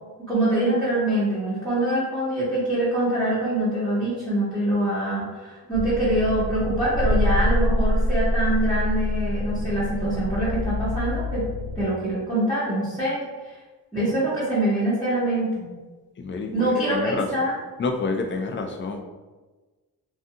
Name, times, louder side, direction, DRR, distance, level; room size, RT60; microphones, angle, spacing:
voice 1, 0.3-11.5 11.8-13.2 13.9-15.7 16.5-17.5, right 1 dB, 10° left, -11 dB, 0.9 m, -24 dB
sound 1, 5.7-11.8, equal, 85° right, 1.0 m, -25 dB
voice 2, 16.2-17.3 17.8-19.0, left 3 dB, 35° left, 4 dB, 0.4 m, -28 dB
2.6 x 2.3 x 2.6 m, 1.2 s
cardioid pair, 90°, 38 cm